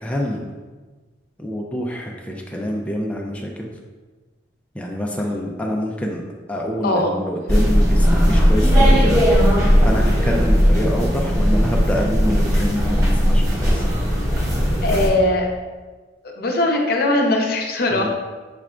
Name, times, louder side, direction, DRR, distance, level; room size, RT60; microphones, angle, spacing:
voice 1, 0.0-0.4 1.4-3.7 4.8-6.2 6.5-9.6 9.8-13.8 17.9-18.1, equal, 5° left, -1 dB, 0.3 m, -26 dB
voice 2, 6.8-7.1 10.0-10.1 14.8-15.5 16.2-18.1, left 1 dB, 55° left, 1 dB, 0.6 m, -20 dB
sound 1, 7.5-15.1, equal, 20° right, 0.9 m, -17 dB
5.8 x 3.3 x 2.4 m, 1.3 s
head